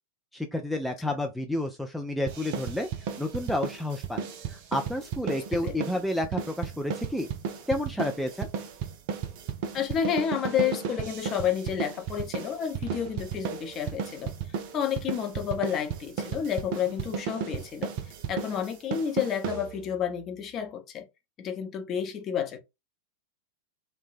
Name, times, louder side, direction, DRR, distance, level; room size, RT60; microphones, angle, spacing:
voice 1, 0.3-2.9 3.2-7.3 7.7-8.5, left 1 dB, ahead, 0.4 m, -30 dB
sound 1, 2.3-20.0, right 7 dB, 45° right, 0.5 m, -34 dB
voice 2, 9.7-14.3 14.7-17.9 18.3-21.1 21.4-22.6, left 8 dB, 30° left, 0.7 m, -30 dB
3.2 x 2.2 x 2.5 m
figure-of-eight pair, 90°, 0 cm